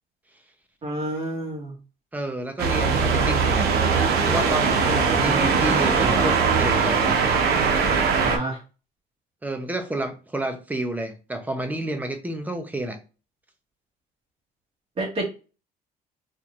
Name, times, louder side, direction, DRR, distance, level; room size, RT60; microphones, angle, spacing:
voice 1, 0.8-1.7 5.1-5.7 8.2-8.6 15.0-15.2, right 1 dB, 35° right, 1.8 m, -30 dB
voice 2, 2.1-3.7 4.3-7.2 9.4-13.0, right 1 dB, 10° right, 0.8 m, -30 dB
sound 1, 2.6-8.4, right 5 dB, 70° right, 0.9 m, -21 dB
4.4 x 2.8 x 2.5 m
cardioid pair, 110°, 17 cm